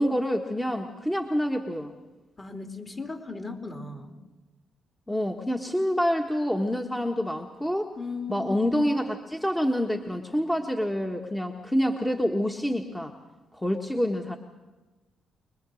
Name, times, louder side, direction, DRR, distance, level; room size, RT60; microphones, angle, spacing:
voice 1, 0.0-1.9 5.1-7.9 8.3-13.1 13.5-14.4, equal, 10° left, 3 dB, 1.5 m, -27 dB
voice 2, 2.4-4.1 8.0-8.7, left 3 dB, 30° left, 4 dB, 3.0 m, -37 dB
24.5 x 21.5 x 6.4 m, 1.2 s
cardioid pair, 70°, 0 cm